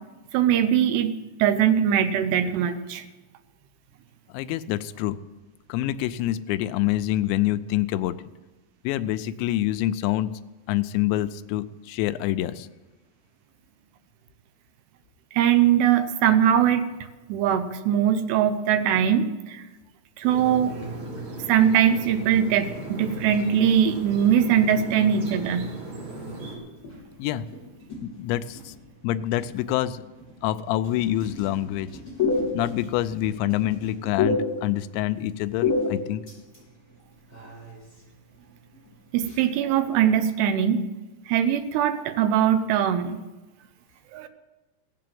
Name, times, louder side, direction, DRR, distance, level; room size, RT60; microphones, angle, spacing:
voice 1, 0.3-1.1 1.4-3.0 15.3-16.8 17.3-19.6 20.2-21.0 21.5-25.7 39.1-40.8 41.3-43.2 44.1-44.3, right 9 dB, 80° right, 10 dB, 2.8 m, -21 dB
voice 2, 4.3-5.2 5.7-8.2 8.8-10.3 10.7-12.7 27.2-27.5 28.0-28.7 29.0-30.0 30.4-31.9 32.5-36.2, left 13 dB, 90° left, 11 dB, 2.9 m, -26 dB
sound 1, 20.2-26.6, right 2 dB, 45° right, 4.4 m, -37 dB
sound 2, 21.8-40.0, left 4 dB, 20° left, 6.9 m, -34 dB
17.0 x 7.7 x 7.6 m, 1.1 s
omnidirectional pair, 5.1 m